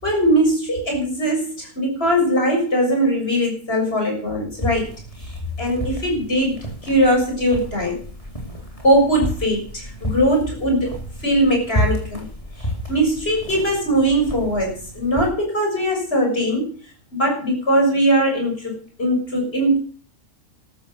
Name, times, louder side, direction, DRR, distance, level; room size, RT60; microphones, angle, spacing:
voice 1, 0.0-4.9 5.6-8.0 8.8-10.9 11.2-12.2 12.9-16.7 17.1-18.7 19.0-19.8, right 1 dB, 45° left, 1 dB, 7.1 m, -20 dB
sound 1, 4.5-15.3, equal, 25° left, 4.2 m, -31 dB
13.5 x 13.0 x 6.7 m, 0.43 s
omnidirectional pair, 1.5 m